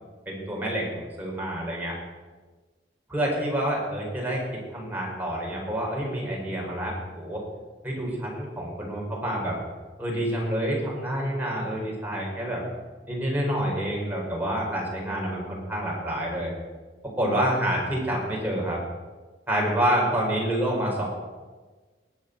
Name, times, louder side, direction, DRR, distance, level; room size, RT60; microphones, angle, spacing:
voice 1, 0.3-1.9 3.1-4.4 4.7-7.4 7.8-9.6 10.0-12.6 13.1-16.5 17.0-18.8 19.5-21.0, right 1 dB, 10° right, -3 dB, 4.6 m, -28 dB
20.5 x 7.4 x 6.7 m, 1.3 s
head